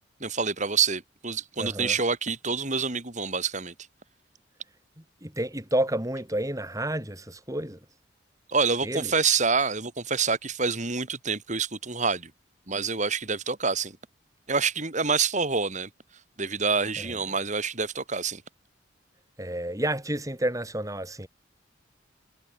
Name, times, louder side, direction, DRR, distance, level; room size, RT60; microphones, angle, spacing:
voice 1, 0.2-3.7 8.5-12.3 12.7-13.9 14.5-15.9 16.4-18.4, right 5 dB, 40° right, 2.7 m, -27 dB
voice 2, 1.6-2.0 5.0-7.8 8.8-9.1 17.0-17.2 19.4-21.3, right 1 dB, 15° right, 5.2 m, -30 dB
head